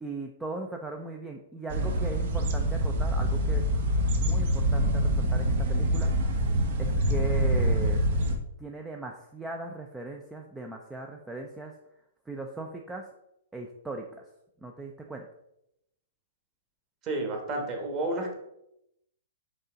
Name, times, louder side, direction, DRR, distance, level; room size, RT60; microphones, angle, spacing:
voice 1, 0.0-3.6 4.2-6.3 6.8-8.0 8.6-11.7 12.3-13.0 13.5-14.0 14.6-15.3, right 2 dB, 5° right, 2 dB, 0.4 m, -38 dB
sound 1, 1.7-8.4, equal, 50° right, 0.9 m, -25 dB
voice 2, 17.0-18.3, right 2 dB, 25° right, 2 dB, 1.3 m, -31 dB
5.4 x 3.6 x 5.0 m, 0.81 s
hypercardioid pair, 160°, 0 cm